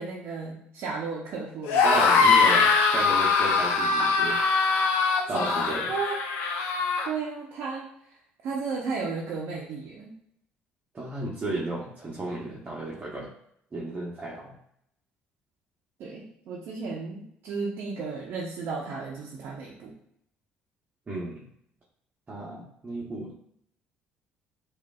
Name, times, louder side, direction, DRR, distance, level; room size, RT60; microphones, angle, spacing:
voice 1, 0.0-2.0 5.3-5.5 5.9-6.2 6.6-7.9 8.4-10.1 16.0-19.9, right 4 dB, 70° right, -4 dB, 0.8 m, -34 dB
sound 1, 1.6-7.1, left 4 dB, 80° left, 0.5 m, -22 dB
voice 2, 1.8-4.4 5.3-5.9 10.9-13.3 13.7-14.5 21.1-21.5 22.3-23.4, right 2 dB, 30° right, -6 dB, 1.0 m, -33 dB
4.8 x 2.6 x 2.4 m, 0.73 s
supercardioid pair, 75°, 4 cm